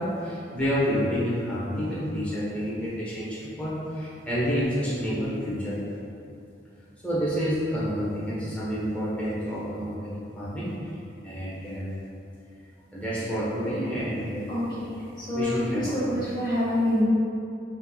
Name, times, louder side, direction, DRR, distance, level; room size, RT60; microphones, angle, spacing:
voice 1, 0.0-5.8 7.0-10.1 10.4-10.7 11.2-11.8 12.9-14.4 15.3-16.2, equal, 5° left, -10 dB, 1.0 m, -29 dB
voice 2, 14.5-14.9 15.3-17.0, left 1 dB, 25° left, -10 dB, 1.4 m, -26 dB
5.3 x 3.5 x 2.3 m, 2.6 s
head